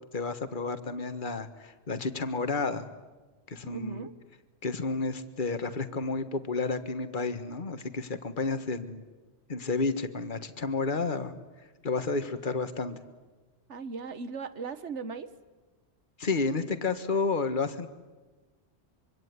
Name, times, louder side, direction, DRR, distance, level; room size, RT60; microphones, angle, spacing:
voice 1, 0.1-2.9 3.5-4.1 4.6-9.0 9.5-11.3 11.8-13.0 16.2-17.9, left 4 dB, 45° left, 10 dB, 1.7 m, -31 dB
voice 2, 3.6-4.1 13.7-15.3, right 4 dB, 90° right, 12 dB, 1.6 m, -38 dB
25.5 x 24.5 x 9.6 m, 1.2 s
omnidirectional pair, 1.2 m